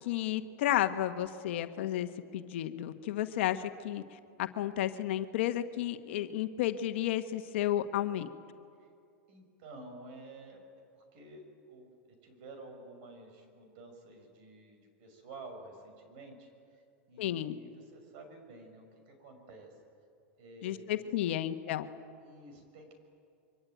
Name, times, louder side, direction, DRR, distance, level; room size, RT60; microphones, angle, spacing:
voice 1, 0.0-2.1 2.3-8.3 17.2-17.6 20.6-21.9, left 12 dB, 75° left, 8 dB, 1.2 m, -32 dB
voice 2, 9.3-10.6 10.9-19.8 20.4-21.1 22.2-22.9, right 2 dB, 55° right, 5 dB, 6.2 m, -51 dB
24.5 x 24.0 x 9.2 m, 2.5 s
supercardioid pair, 150°, 7 cm